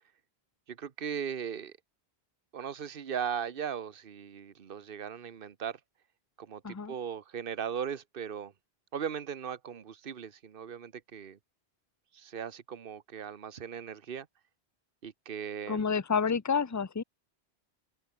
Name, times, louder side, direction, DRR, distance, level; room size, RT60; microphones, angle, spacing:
voice 1, 0.7-1.7 2.5-5.8 6.4-8.5 8.9-11.4 12.1-14.3 15.0-15.9, right 8 dB, 55° right, 1.2 m, -38 dB
voice 2, 15.7-17.0, left 6 dB, 20° left, 0.6 m, -29 dB
omnidirectional pair, 1.1 m